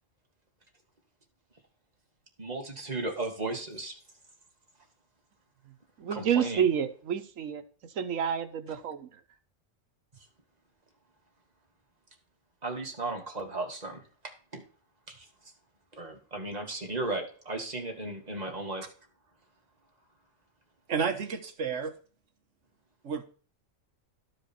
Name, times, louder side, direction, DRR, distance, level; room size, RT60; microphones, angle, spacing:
voice 1, 2.4-3.9 6.1-6.6 12.6-14.0 14.5-14.6 15.1-15.3 15.9-18.9, right 2 dB, 30° right, 1 dB, 2.0 m, -35 dB
voice 2, 5.7-7.6 7.9-9.2, right 8 dB, 90° right, 9 dB, 1.3 m, -29 dB
voice 3, 20.9-22.0 23.0-23.2, right 6 dB, 65° right, 5 dB, 1.5 m, -31 dB
12.5 x 5.0 x 4.3 m, 0.42 s
omnidirectional pair, 1.3 m